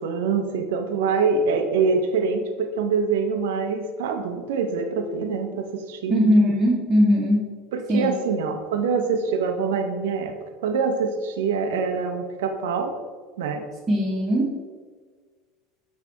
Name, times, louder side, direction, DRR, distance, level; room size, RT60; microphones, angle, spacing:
voice 1, 0.0-6.2 7.7-10.3 10.6-12.9 13.4-13.6, right 5 dB, 75° right, 6 dB, 1.0 m, -25 dB
voice 2, 6.1-7.5 7.9-8.1 13.9-14.6, equal, 25° right, -7 dB, 1.8 m, -19 dB
8.3 x 5.8 x 3.5 m, 1.5 s
hypercardioid pair, 80°, 0 cm